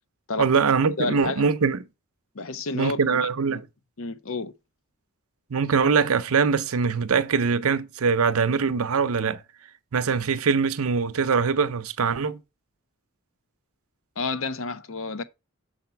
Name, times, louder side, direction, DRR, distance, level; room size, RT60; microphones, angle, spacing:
voice 1, 0.4-1.8 2.7-3.6 5.5-9.4 9.9-12.4, right 5 dB, 70° right, 0.6 m, -23 dB
voice 2, 1.0-1.5 2.3-3.6 4.0-4.5 14.2-15.2, left 3 dB, 60° left, 0.7 m, -30 dB
6.6 x 4.3 x 5.6 m
head